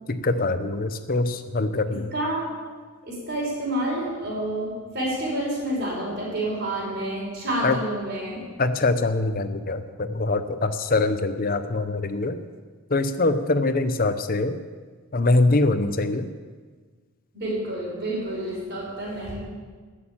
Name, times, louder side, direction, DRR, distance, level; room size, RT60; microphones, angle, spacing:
voice 1, 0.1-2.1 7.6-7.8 8.6-12.4 12.9-14.5 15.1-16.3, left 2 dB, 40° left, 10 dB, 0.8 m, -23 dB
voice 2, 1.9-2.5 3.0-8.5 17.3-19.4, right 1 dB, 45° right, -5 dB, 5.3 m, -29 dB
14.5 x 6.7 x 8.8 m, 1.5 s
head